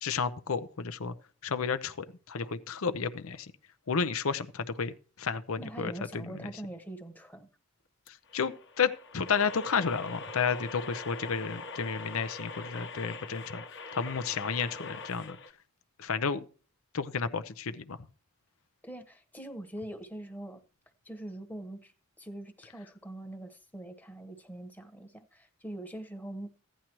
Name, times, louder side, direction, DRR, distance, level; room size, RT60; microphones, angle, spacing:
voice 1, 0.0-1.1 1.4-1.9 2.3-3.5 3.9-4.9 5.2-5.9 8.3-13.6 13.9-15.4 16.0-16.4 16.9-18.0, left 5 dB, 75° left, 10 dB, 0.7 m, -31 dB
voice 2, 5.6-7.5 18.8-20.6 21.0-21.9 22.2-26.5, right 1 dB, 10° left, 7 dB, 1.1 m, -43 dB
sound 1, 8.1-15.5, left 3 dB, 55° left, 1.1 m, -43 dB
16.0 x 10.0 x 3.0 m, 0.39 s
head